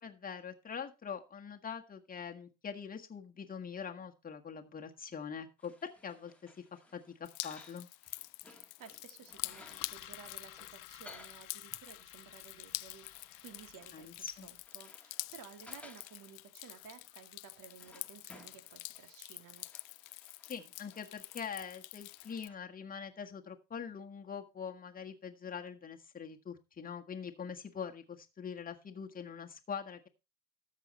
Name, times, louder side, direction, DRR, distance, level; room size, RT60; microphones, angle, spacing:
voice 1, 0.0-7.9 13.9-14.5 20.5-30.1, left 6 dB, 20° left, 4 dB, 1.6 m, -44 dB
sound 1, 5.6-22.6, left 2 dB, 5° left, 1.7 m, -60 dB
Drip, 7.2-22.5, left 25 dB, 90° left, 0.5 m, -47 dB
voice 2, 8.5-19.7, right 7 dB, 55° right, 7 dB, 2.6 m, -55 dB
Engine, 9.3-14.6, left 14 dB, 50° left, 1.3 m, -54 dB
13.0 x 7.6 x 4.1 m, 0.28 s
supercardioid pair, 120°, 39 cm